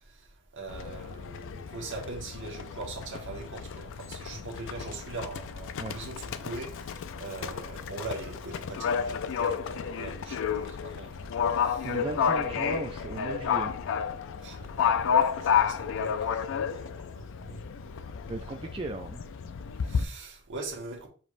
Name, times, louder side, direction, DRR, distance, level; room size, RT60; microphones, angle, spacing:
voice 1, 0.5-11.9 12.2-12.6 14.4-14.8 15.1-15.2 15.4-17.9 19.9-21.1, right 3 dB, 60° right, 1.3 m, -42 dB
Livestock farm animals working animals, 0.7-20.0, left 7 dB, 60° left, 0.4 m, -31 dB
voice 2, 11.8-13.7 18.3-19.2, right 3 dB, 25° right, 0.3 m, -36 dB
6.9 x 3.1 x 2.5 m
head